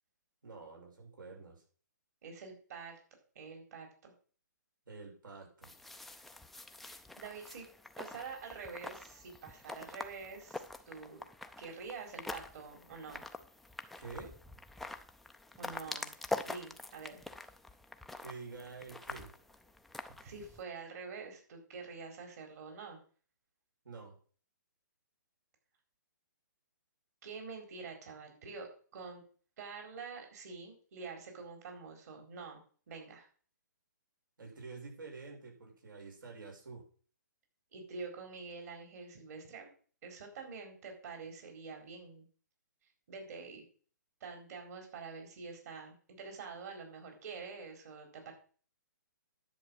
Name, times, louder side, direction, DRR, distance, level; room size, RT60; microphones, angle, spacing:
voice 1, 0.4-1.6 4.9-5.7 13.9-14.3 18.2-19.3 23.8-24.2 34.4-36.8, right 4 dB, 80° right, 0 dB, 6.8 m, -48 dB
voice 2, 2.2-3.0 3.3-4.1 6.8-7.7 8.0-11.2 11.6-13.2 15.6-16.1 16.5-17.2 20.2-23.0 27.2-29.2 29.6-32.6 32.9-33.3 37.7-39.7 40.0-42.2 43.1-43.6 44.2-48.3, right 4 dB, 55° right, 3 dB, 4.3 m, -46 dB
sound 1, 5.6-20.6, left 2 dB, ahead, 0.4 m, -45 dB
10.5 x 7.2 x 6.3 m, 0.43 s
hypercardioid pair, 155°, 11 cm